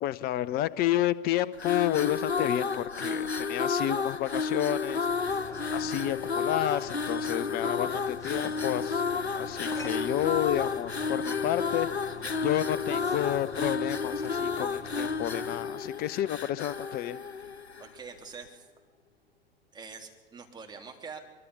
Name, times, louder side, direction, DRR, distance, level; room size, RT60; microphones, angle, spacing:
voice 1, 0.0-5.1 5.7-11.9 12.4-17.2, left 13 dB, 30° left, 19 dB, 0.8 m, -30 dB
sound 1, 1.5-18.0, left 5 dB, 85° left, 0.8 m, -31 dB
sound 2, 5.0-15.7, left 3 dB, 10° left, 2.3 m, -47 dB
sound 3, 8.3-15.2, right 4 dB, 50° right, 5.0 m, -58 dB
voice 2, 17.8-18.7 19.7-21.2, right 5 dB, 15° right, 2 dB, 3.2 m, -44 dB
24.0 x 24.0 x 5.5 m, 1.2 s
figure-of-eight pair, 90°, 32 cm